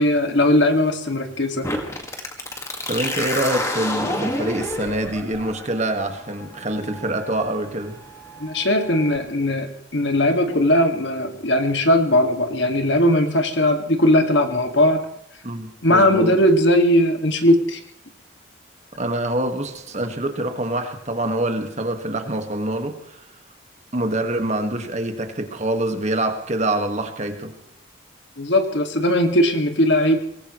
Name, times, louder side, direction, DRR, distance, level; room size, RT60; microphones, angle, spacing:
voice 1, 0.0-1.7 8.4-15.0 15.8-17.8 28.4-30.2, left 1 dB, 65° left, 5 dB, 2.2 m, -19 dB
sound 1, 1.6-9.2, left 1 dB, 15° left, 1.9 m, -30 dB
voice 2, 2.9-8.0 15.4-16.4 18.9-23.2 23.9-27.6, right 1 dB, 35° right, 6 dB, 1.8 m, -25 dB
23.5 x 19.5 x 3.2 m, 0.74 s
head